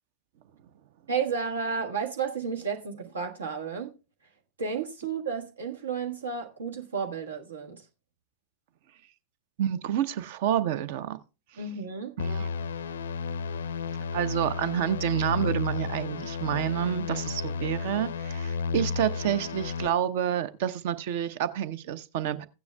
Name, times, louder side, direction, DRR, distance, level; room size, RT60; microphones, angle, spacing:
voice 1, 1.1-3.9 4.6-7.8 11.6-12.1, right 6 dB, 70° right, 1.4 m, -32 dB
voice 2, 9.6-11.2 11.5-11.6 12.2-12.5 14.1-22.5, right 10 dB, 50° right, 0.7 m, -29 dB
sound 1, 12.2-19.9, left 5 dB, 65° left, 0.5 m, -32 dB
15.5 x 9.5 x 2.2 m
figure-of-eight pair, 90°, 0 cm